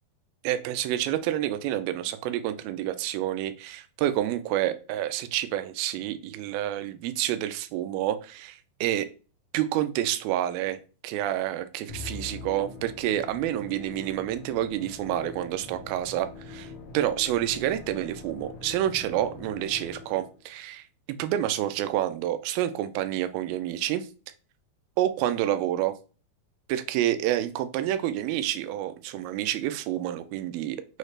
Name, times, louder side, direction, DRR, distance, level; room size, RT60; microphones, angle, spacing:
voice 1, 0.4-9.1 9.5-16.7 16.9-20.9 21.2-24.1 25.0-25.9 26.7-31.0, right 12 dB, 80° right, 10 dB, 2.2 m, -28 dB
Musical instrument, 11.9-20.4, left 3 dB, 80° left, 1.6 m, -43 dB
6.3 x 2.4 x 3.1 m, 0.35 s
omnidirectional pair, 4.4 m